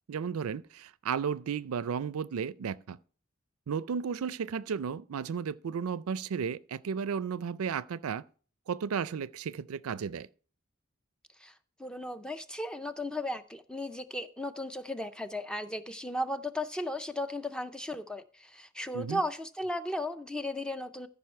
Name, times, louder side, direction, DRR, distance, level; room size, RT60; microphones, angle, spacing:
voice 1, 0.1-3.0 3.7-8.2 8.7-10.3 18.9-19.2, right 6 dB, 80° right, 0.4 m, -34 dB
voice 2, 11.8-21.1, left 1 dB, 5° left, 0.5 m, -35 dB
14.0 x 5.4 x 4.4 m
head